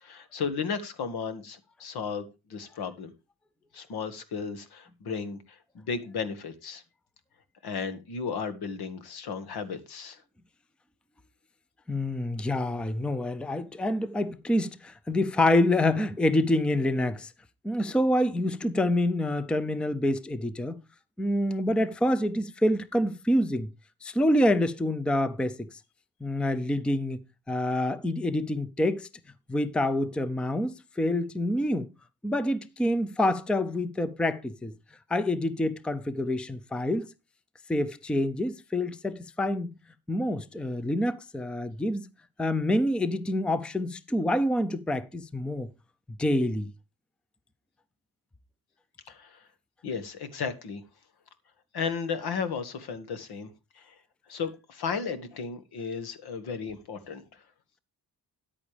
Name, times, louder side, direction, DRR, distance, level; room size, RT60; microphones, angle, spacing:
voice 1, 0.0-3.1 3.7-6.8 7.6-10.2 49.1-49.4 49.8-50.8 51.7-53.5 53.8-53.9 54.3-57.2, left 5 dB, 80° left, 1.8 m, -34 dB
voice 2, 11.9-17.3 17.6-20.8 21.2-23.7 24.0-25.7 26.2-29.1 29.5-31.9 32.2-34.7 35.1-37.1 37.7-39.7 40.1-42.1 42.4-45.7 46.2-46.7, left 1 dB, 5° left, 0.5 m, -27 dB
13.5 x 9.8 x 3.3 m
wide cardioid pair, 170°, 37 cm